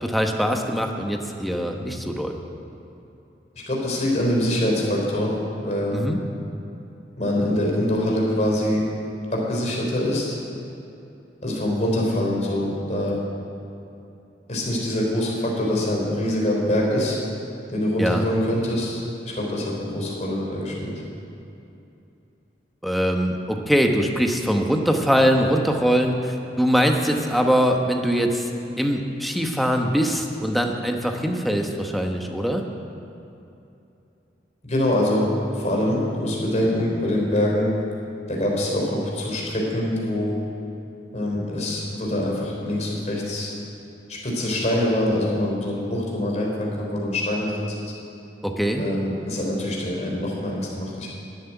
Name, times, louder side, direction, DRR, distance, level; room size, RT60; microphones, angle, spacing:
voice 1, 0.0-2.4 5.9-6.2 18.0-18.3 22.8-28.5 28.8-32.6 48.4-48.8, equal, ahead, 3 dB, 1.0 m, -22 dB
voice 2, 3.7-5.3 5.6-6.0 7.2-8.8 9.3-10.4 11.4-13.2 14.5-17.2 17.7-20.9 34.6-37.7 38.3-40.3 41.1-43.5 44.1-47.9 48.8-51.1, left 1 dB, 40° left, -2 dB, 3.4 m, -24 dB
12.5 x 7.8 x 10.0 m, 2.8 s
head